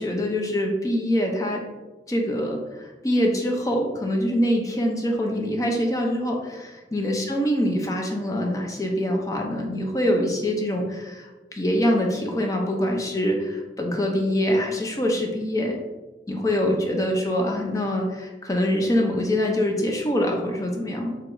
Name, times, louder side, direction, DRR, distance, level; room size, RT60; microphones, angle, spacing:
voice 1, 0.0-1.6 2.1-15.8 16.3-21.2, equal, 20° left, 1 dB, 0.4 m, -24 dB
4.8 x 2.8 x 2.5 m, 1.2 s
head